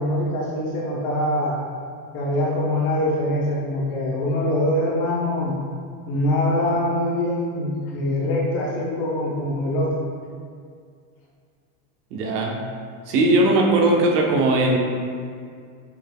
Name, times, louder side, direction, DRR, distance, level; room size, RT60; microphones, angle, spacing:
voice 1, 0.0-1.6 2.1-5.5 6.1-10.0, left 1 dB, 35° left, -3 dB, 0.9 m, -23 dB
voice 2, 12.1-12.6 13.1-14.8, right 2 dB, 75° right, 0 dB, 1.0 m, -19 dB
5.9 x 4.0 x 2.2 m, 2.2 s
supercardioid pair, 165°, 47 cm